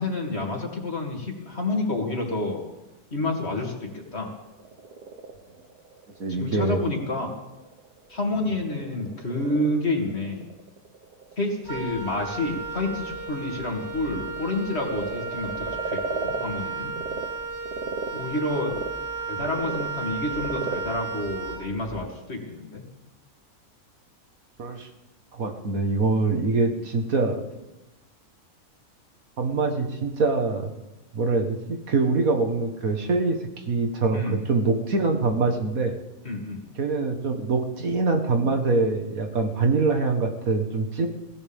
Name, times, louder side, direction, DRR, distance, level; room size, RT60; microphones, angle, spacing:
voice 1, 0.0-2.6 3.1-4.3 6.3-7.3 8.1-10.5 11.4-16.9 18.1-18.7 19.3-22.8 34.1-34.4 36.2-36.6, left 2 dB, 45° left, 1 dB, 2.8 m, -29 dB
Frog, 4.4-17.3 17.6-22.3, right 4 dB, 85° right, 2.0 m, -38 dB
voice 2, 6.2-6.8 8.3-8.5 24.6-24.9 25.3-27.4 29.4-30.7 31.1-33.4 33.7-36.0 36.8-41.1, right 3 dB, 65° right, 4 dB, 1.9 m, -24 dB
Wind instrument woodwind instrument, 11.6-22.1, right 4 dB, 15° right, 2.2 m, -34 dB
23.5 x 16.5 x 3.6 m, 1.0 s
omnidirectional pair, 1.6 m